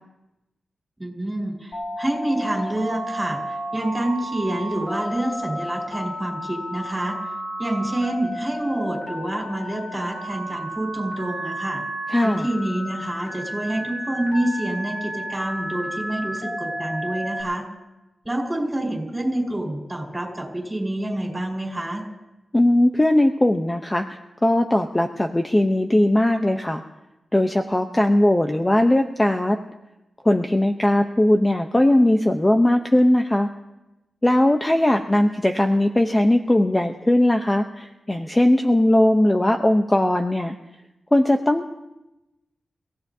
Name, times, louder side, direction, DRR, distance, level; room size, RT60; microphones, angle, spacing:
voice 1, 1.0-7.2 7.6-11.8 12.2-17.7 18.2-22.0, right 1 dB, 15° right, 0 dB, 4.7 m, -27 dB
Telephone, 1.7-17.4, equal, 75° left, 5.3 m, -32 dB
voice 2, 12.1-12.4 22.5-26.8 27.3-29.6 30.2-33.5 34.2-40.5 41.1-41.7, left 1 dB, 15° left, 5 dB, 0.7 m, -19 dB
30.0 x 16.5 x 2.7 m, 0.98 s
wide cardioid pair, 110°, 0 cm